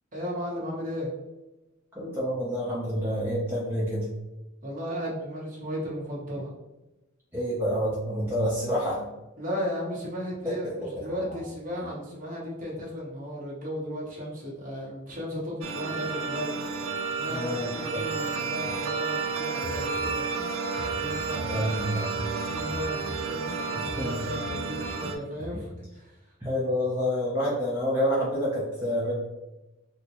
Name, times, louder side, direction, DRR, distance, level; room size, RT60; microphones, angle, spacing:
voice 1, 0.1-1.1 4.6-6.5 9.4-20.2 21.0-26.3, equal, 40° right, -5 dB, 1.0 m, -35 dB
voice 2, 2.0-4.1 7.3-9.1 10.4-11.4 17.3-17.7 17.9-18.0 21.4-22.2 23.7-24.2 26.4-29.1, equal, 10° right, -7 dB, 0.6 m, -28 dB
sound 1, 15.6-25.2, right 4 dB, 80° right, 0.4 m, -31 dB
sound 2, 19.6-20.5 20.8-23.6 23.9-25.1 25.4-25.8, left 1 dB, 25° left, 0.6 m, -41 dB
3.6 x 2.1 x 2.9 m, 1.0 s
head